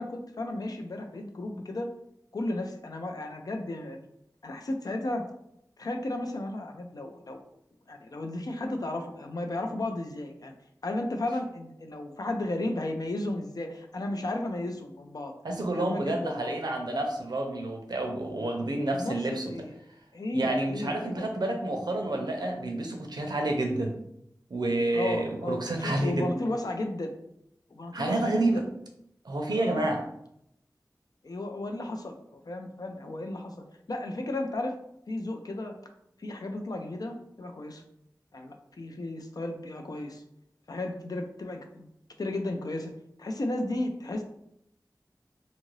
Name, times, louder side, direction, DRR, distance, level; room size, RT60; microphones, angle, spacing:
voice 1, 0.0-1.9 2.3-4.1 4.4-5.2 5.8-7.4 7.9-10.5 10.8-15.3 15.8-16.6 18.5-19.7 20.1-21.3 24.9-27.1 27.7-28.6 29.5-30.0 31.2-34.8 35.1-35.7 36.2-37.8 38.3-40.2 40.7-41.9 42.2-42.9 43.2-44.2, left 1 dB, 65° left, 4 dB, 0.4 m, -34 dB
voice 2, 15.4-19.4 20.3-24.0 24.5-26.3 27.9-28.7 29.2-30.0, right 2 dB, 75° right, 3 dB, 0.5 m, -29 dB
2.7 x 2.5 x 3.1 m, 0.76 s
wide cardioid pair, 60°, 7 cm